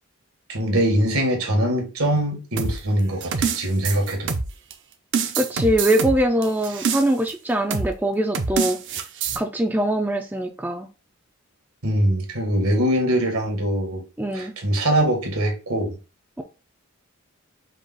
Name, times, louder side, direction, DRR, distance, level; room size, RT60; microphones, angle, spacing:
voice 1, 0.5-4.4 11.8-14.0 14.3-15.9, right 1 dB, 80° right, 1.7 m, -22 dB
sound 1, 2.6-4.7 5.1-7.3 7.7-8.0 8.3-9.4, right 5 dB, 55° right, 0.6 m, -26 dB
voice 2, 5.4-8.8 9.4-10.9 14.2-14.5 16.4-16.5, right 1 dB, 10° right, 0.3 m, -22 dB
5.2 x 2.4 x 3.9 m
head